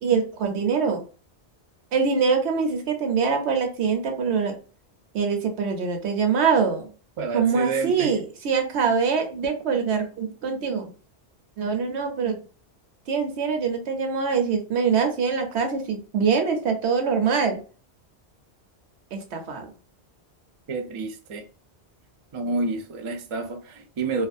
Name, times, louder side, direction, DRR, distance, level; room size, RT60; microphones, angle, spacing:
voice 1, 0.0-1.0 1.9-4.6 5.1-6.9 7.3-10.9 11.6-12.4 13.1-17.6 19.1-19.7, right 5 dB, 80° right, 1.0 m, -24 dB
voice 2, 7.2-8.1 20.7-21.4 22.3-24.3, right 3 dB, 50° right, 0.3 m, -29 dB
2.4 x 2.4 x 2.5 m
omnidirectional pair, 1.1 m